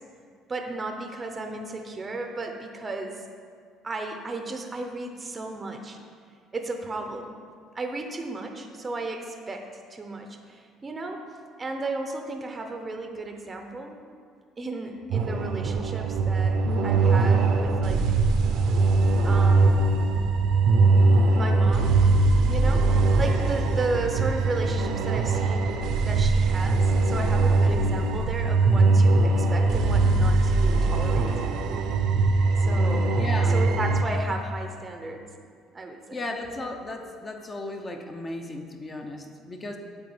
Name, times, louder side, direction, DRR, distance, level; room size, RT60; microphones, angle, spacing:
voice 1, 0.5-3.2 3.8-6.0 6.5-7.3 7.7-11.2 11.6-14.0 14.6-16.6 16.8-18.0 19.2-19.9 21.3-21.9 22.5-25.7 26.0-31.3 32.6-33.2 33.5-35.2 35.7-36.2, right 2 dB, 20° right, 4 dB, 0.7 m, -34 dB
sound 1, 15.1-34.0, right 3 dB, 60° right, 0.7 m, -21 dB
voice 2, 33.2-33.7 36.1-39.8, left 2 dB, 20° left, 4 dB, 0.6 m, -35 dB
9.0 x 4.2 x 7.1 m, 2.1 s
cardioid pair, 145°, 0 cm